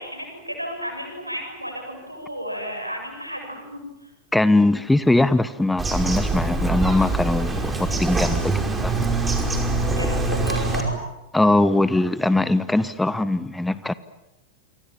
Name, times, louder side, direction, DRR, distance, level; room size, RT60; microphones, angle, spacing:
voice 1, 0.0-4.1 10.0-11.0, equal, 90° right, 3 dB, 7.6 m, -33 dB
voice 2, 4.3-8.9 11.3-13.9, left 2 dB, 5° left, 16 dB, 1.0 m, -21 dB
Bird vocalization bird call bird song, 5.8-10.8, right 3 dB, 10° right, 5.2 m, -24 dB
29.0 x 25.0 x 7.5 m, 0.97 s
figure-of-eight pair, 90°, 0 cm